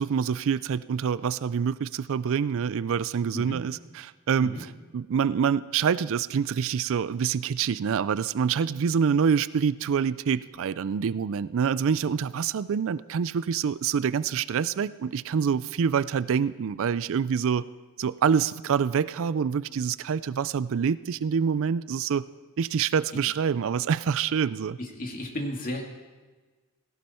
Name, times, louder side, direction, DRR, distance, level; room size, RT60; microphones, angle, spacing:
voice 1, 0.0-17.6 18.0-22.2 22.6-24.8, right 7 dB, 60° right, 17 dB, 0.4 m, -26 dB
voice 2, 24.8-25.8, left 1 dB, 40° left, 1 dB, 2.3 m, -33 dB
17.0 x 17.0 x 4.4 m, 1.3 s
head